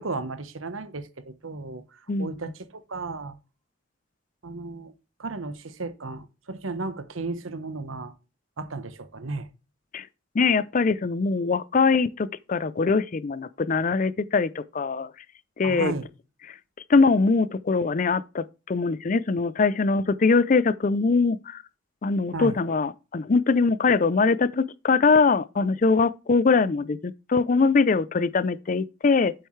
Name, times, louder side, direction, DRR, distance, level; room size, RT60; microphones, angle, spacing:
voice 1, 0.0-3.4 4.4-4.9 5.2-8.1 8.6-9.5 15.6-16.1 22.3-22.6, right 3 dB, 85° right, 1.1 m, -34 dB
voice 2, 10.3-15.1 15.6-15.9 16.9-21.6 22.0-29.3, left 4 dB, 40° left, 0.4 m, -22 dB
7.9 x 7.9 x 3.2 m
head